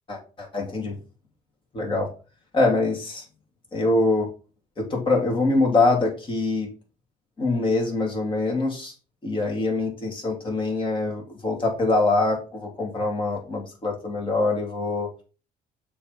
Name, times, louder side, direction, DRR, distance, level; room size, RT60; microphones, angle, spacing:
voice 1, 0.1-1.0 1.7-2.1 2.5-3.2 3.7-4.3 4.8-6.7 7.4-8.9 9.2-15.1, left 2 dB, 30° left, 0 dB, 3.0 m, -24 dB
6.9 x 3.5 x 5.8 m, 0.35 s
cardioid pair, 110°, 17 cm